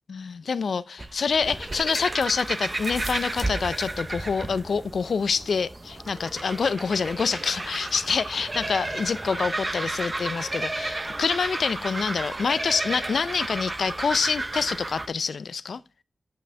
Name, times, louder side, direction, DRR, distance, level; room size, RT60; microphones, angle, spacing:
voice 1, 0.1-15.8, left 5 dB, 85° left, 0.4 m, -26 dB
sound 1, 1.0-15.1, right 2 dB, 30° right, 0.8 m, -32 dB
8.4 x 7.6 x 3.3 m
wide cardioid pair, 85°, 0 cm